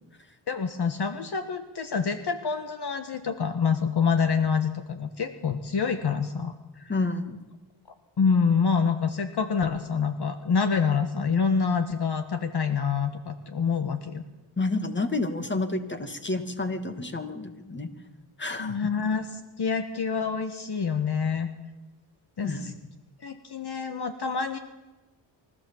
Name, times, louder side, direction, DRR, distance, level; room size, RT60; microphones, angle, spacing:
voice 1, 0.5-6.9 8.2-14.2 18.6-19.3 19.6-21.5 22.4-22.5 23.2-24.6, left 5 dB, 55° left, 8 dB, 1.7 m, -26 dB
voice 2, 6.9-7.4 14.6-17.9 18.4-18.8 22.4-22.7, left 2 dB, 25° left, 7 dB, 2.5 m, -29 dB
24.0 x 15.5 x 7.3 m, 1.1 s
cardioid pair, 65°, 47 cm